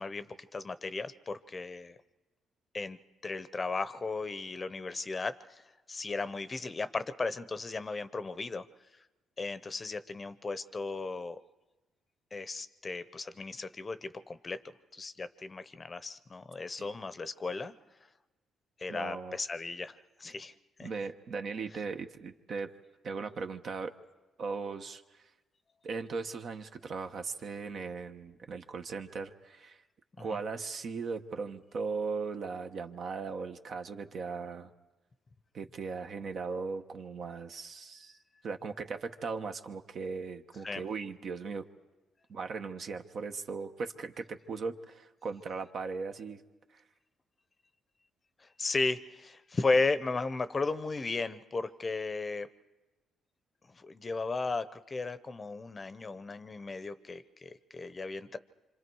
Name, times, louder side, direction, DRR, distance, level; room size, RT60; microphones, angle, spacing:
voice 1, 0.0-2.0 2.7-3.0 3.2-5.6 5.9-8.6 9.4-11.4 12.3-14.6 14.9-17.7 18.8-20.5 20.8-20.9 30.2-30.4 40.6-40.8 48.6-52.5 53.8-58.4, left 3 dB, 30° left, 13 dB, 0.7 m, -35 dB
voice 2, 18.9-19.4 20.8-22.7 23.0-23.9 24.4-25.0 25.8-29.8 30.2-34.7 35.5-38.2 38.4-41.7 42.3-46.4, right 4 dB, 60° right, 6 dB, 1.1 m, -38 dB
26.0 x 26.0 x 4.7 m, 1.1 s
cardioid pair, 90°, 0 cm